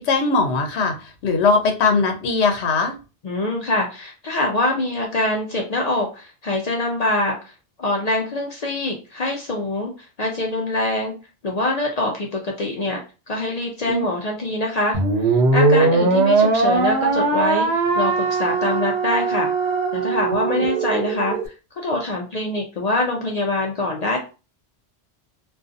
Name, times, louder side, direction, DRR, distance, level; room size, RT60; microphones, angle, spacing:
voice 1, 0.0-2.9 13.9-14.1 20.3-20.7, left 4 dB, 85° left, 5 dB, 0.9 m, -20 dB
voice 2, 3.2-7.5 7.8-11.1 11.4-13.0 13.3-17.7 18.0-19.5 19.9-21.4 21.8-24.2, left 2 dB, 55° left, 0 dB, 0.5 m, -24 dB
sound 1, 14.9-21.5, right 3 dB, 80° right, 0.8 m, -20 dB
2.5 x 2.3 x 2.5 m, 0.32 s
omnidirectional pair, 1.1 m